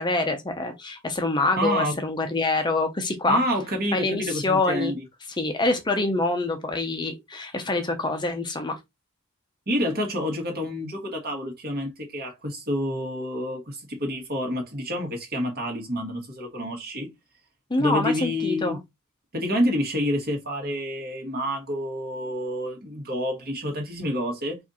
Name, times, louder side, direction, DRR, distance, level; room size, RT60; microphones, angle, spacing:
voice 1, 0.0-3.4 3.9-4.9 5.4-8.8 17.7-18.8, left 2 dB, 20° left, 0.6 m, -25 dB
voice 2, 1.6-1.9 3.3-5.0 9.7-17.1 17.8-18.8 19.3-24.6, equal, 45° right, 1.7 m, -28 dB
4.8 x 2.6 x 4.1 m
head